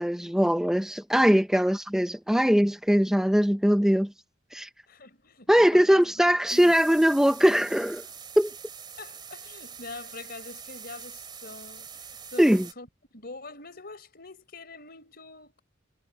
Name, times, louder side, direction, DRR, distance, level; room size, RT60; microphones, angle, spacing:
voice 1, 0.0-4.1 4.5-4.7 5.5-8.0 8.4-8.5 12.4-12.6, equal, 5° right, 0.6 m, -21 dB
voice 2, 4.9-6.7 8.5-8.6 9.0-12.9 13.1-15.6, left 3 dB, 50° left, 4.2 m, -44 dB
sound 1, 6.5-12.7, right 7 dB, 25° right, 3.0 m, -44 dB
head